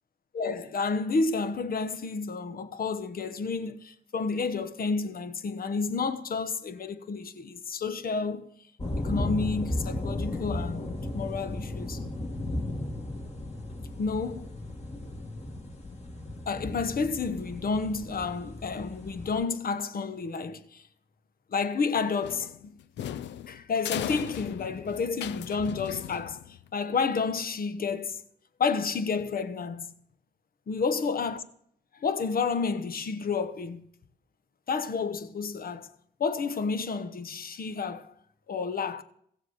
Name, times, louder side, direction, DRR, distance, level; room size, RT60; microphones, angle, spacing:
voice 1, 0.3-8.5 9.0-10.9 11.1-12.0 14.0-14.6 16.5-20.8 21.5-22.8 23.5-26.4 26.7-28.2 28.6-29.9 30.7-31.4 31.9-33.9 34.7-35.9 36.2-38.1 38.5-39.0, left 4 dB, 55° left, 1.1 m, -30 dB
sound 1, 8.8-19.4, left 1 dB, 40° left, 2.4 m, -35 dB
sound 2, 22.2-26.7, left 10 dB, 85° left, 0.5 m, -37 dB
16.0 x 7.2 x 8.0 m
cardioid pair, 70°, 18 cm